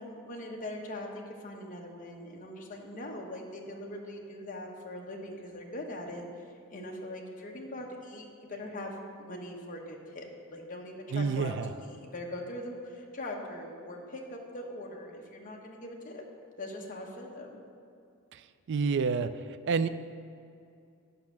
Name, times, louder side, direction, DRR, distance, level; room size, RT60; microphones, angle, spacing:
voice 1, 0.0-16.2 16.6-17.5, left 1 dB, 40° left, 0 dB, 0.9 m, -41 dB
voice 2, 11.1-11.7 18.3-18.4 18.7-19.3 19.7-19.9, right 5 dB, 55° right, 12 dB, 0.4 m, -28 dB
8.6 x 5.3 x 5.9 m, 2.4 s
head